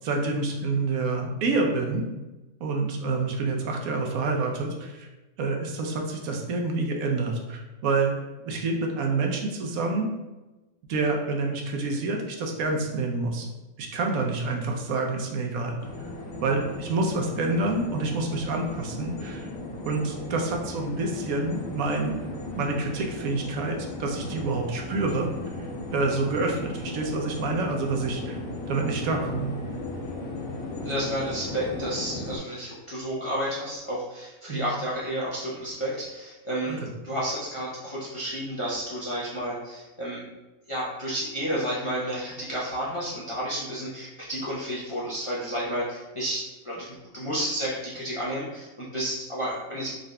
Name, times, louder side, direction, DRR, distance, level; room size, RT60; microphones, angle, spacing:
voice 1, 0.0-2.0 2.6-5.1 5.4-8.1 8.4-10.1 10.9-13.5 13.8-15.8 16.4-19.5 19.8-22.2 22.6-25.3 25.9-28.4 28.7-29.5 34.5-34.6 36.6-36.8, right 3 dB, 80° right, 2 dB, 1.1 m, -27 dB
sound 1, 15.8-32.4, left 2 dB, 85° left, 1.2 m, -36 dB
voice 2, 30.8-40.2 40.7-49.9, equal, 35° left, -7 dB, 0.5 m, -31 dB
3.8 x 2.5 x 3.2 m, 1.1 s
omnidirectional pair, 1.4 m